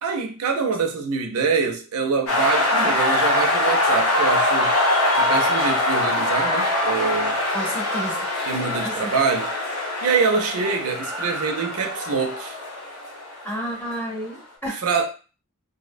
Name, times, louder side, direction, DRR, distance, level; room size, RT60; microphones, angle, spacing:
voice 1, 0.0-4.7 5.2-7.4 8.5-9.5 10.0-12.6 14.8-15.1, right 5 dB, 75° right, 0.5 m, -25 dB
sound 1, 2.3-14.0, left 1 dB, 85° left, 1.0 m, -23 dB
voice 2, 7.5-8.3 8.8-9.1 13.4-14.8, equal, 10° left, 0.8 m, -31 dB
2.6 x 2.0 x 2.5 m
head